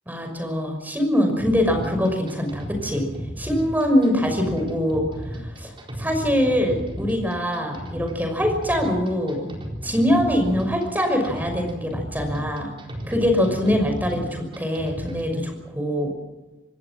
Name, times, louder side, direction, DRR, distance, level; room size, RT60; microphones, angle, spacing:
voice 1, 0.1-3.1 3.4-5.1 5.3-5.7 6.0-9.5 9.8-12.7 13.1-16.1, equal, 10° right, 4 dB, 5.9 m, -23 dB
sound 1, 1.4-15.3, equal, 25° right, 4.1 m, -34 dB
26.5 x 20.0 x 6.2 m, 1.2 s
head